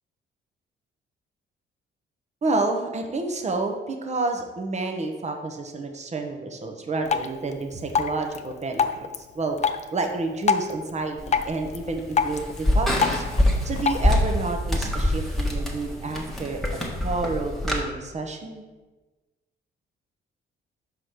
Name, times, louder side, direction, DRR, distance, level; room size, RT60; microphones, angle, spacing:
voice 1, 2.4-9.6 9.9-13.2 13.6-16.6 17.0-18.6, right 3 dB, 35° right, 4 dB, 1.0 m, -29 dB
Drip, 7.0-14.0, left 6 dB, 35° left, 0.5 m, -28 dB
sound 1, 11.2-17.8, left 1 dB, ahead, 1.3 m, -25 dB
4.9 x 4.9 x 5.9 m, 1.2 s
cardioid pair, 90°, 20 cm